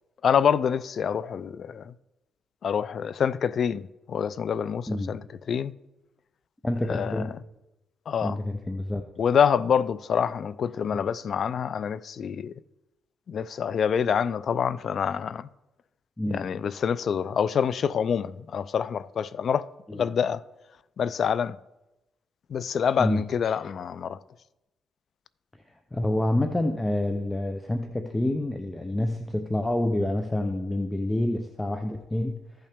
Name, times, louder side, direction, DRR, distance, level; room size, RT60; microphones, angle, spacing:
voice 1, 0.2-1.9 2.6-5.7 6.9-7.3 8.1-8.4 9.2-12.5 13.3-15.5 16.3-20.4 21.0-21.6 22.5-24.2, left 7 dB, 55° left, 0.3 m, -26 dB
voice 2, 6.6-7.3 8.2-9.0 16.2-16.5 19.9-20.0 23.0-23.2 25.9-32.7, left 1 dB, 15° left, 0.6 m, -27 dB
15.0 x 5.6 x 3.5 m
cardioid pair, 90°, 0 cm